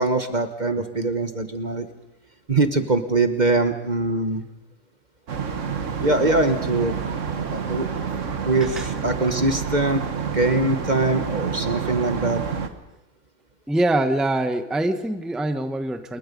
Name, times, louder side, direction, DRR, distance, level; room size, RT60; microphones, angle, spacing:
voice 1, 0.0-1.9 2.5-4.5 6.0-7.0 7.5-7.9 8.4-12.4, right 2 dB, 35° right, 8 dB, 1.2 m, -22 dB
sound 1, 5.3-12.7, right 6 dB, 65° right, 1.7 m, -28 dB
voice 2, 13.7-16.2, right 1 dB, ahead, 8 dB, 1.0 m, -24 dB
28.5 x 21.5 x 5.3 m, 0.96 s
omnidirectional pair, 1.4 m